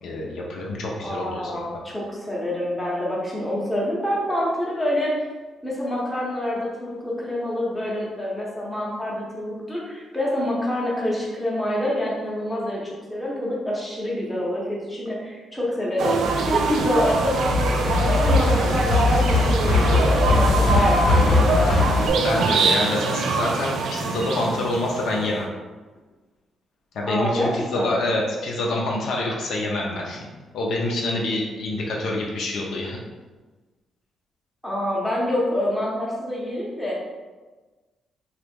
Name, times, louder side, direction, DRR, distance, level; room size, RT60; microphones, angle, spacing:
voice 1, 0.0-1.6 22.2-25.5 26.9-30.2 30.5-33.0, left 2 dB, 65° left, -2 dB, 0.5 m, -26 dB
voice 2, 1.0-5.1 5.6-12.8 13.1-21.8 27.1-28.1 34.6-37.0, left 1 dB, 10° left, -5 dB, 0.7 m, -26 dB
sound 1, 16.0-25.4, right 4 dB, 70° right, 0.3 m, -24 dB
sound 2, 16.2-22.1, left 3 dB, 90° left, 0.9 m, -21 dB
3.0 x 2.3 x 3.5 m, 1.3 s
cardioid pair, 150°, 0 cm